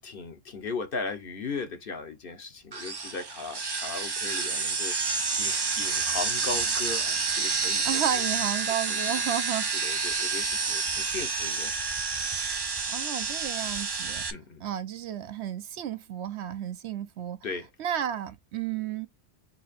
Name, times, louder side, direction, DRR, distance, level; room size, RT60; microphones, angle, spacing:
voice 1, 0.0-7.9 8.1-8.2 8.9-9.1 9.7-12.2 14.3-14.6 17.4-17.7, left 4 dB, 50° left, 1.0 m, -37 dB
sound 1, 2.7-14.3, right 4 dB, 30° right, 0.4 m, -29 dB
voice 2, 7.8-9.7 12.9-14.2 14.6-17.4 17.8-19.1, right 10 dB, 70° right, 0.9 m, -32 dB
4.2 x 2.8 x 4.1 m
omnidirectional pair, 1.3 m